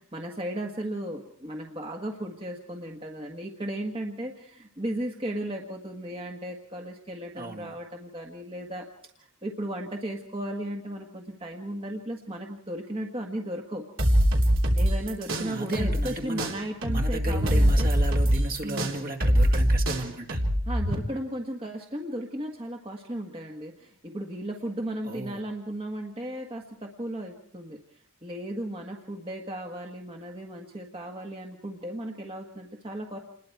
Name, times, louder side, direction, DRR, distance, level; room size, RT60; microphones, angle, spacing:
voice 1, 0.0-8.8 9.2-13.8 14.7-17.9 18.6-19.0 20.7-27.8 28.2-33.2, right 1 dB, 25° right, 1 dB, 1.5 m, -35 dB
voice 2, 7.4-7.8 15.3-16.5 16.9-20.4 25.0-25.4, right 1 dB, 40° right, 2 dB, 2.1 m, -34 dB
sound 1, 14.0-16.1 16.4-20.9, equal, 65° right, 3.6 m, -23 dB
28.0 x 21.0 x 4.7 m, 0.65 s
head